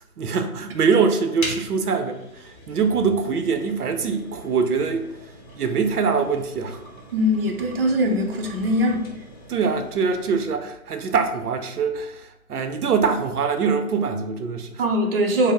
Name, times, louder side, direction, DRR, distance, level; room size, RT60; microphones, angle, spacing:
voice 1, 0.2-5.2 5.6-6.8 8.9-9.0 9.5-14.8, right 5 dB, 80° right, 7 dB, 0.7 m, -23 dB
sound 1, 1.4-10.5, left 1 dB, 30° left, 1.0 m, -41 dB
voice 2, 7.1-9.0 14.8-15.5, equal, 40° right, 0 dB, 0.6 m, -21 dB
5.1 x 2.1 x 3.6 m, 0.82 s
hypercardioid pair, 150°, 44 cm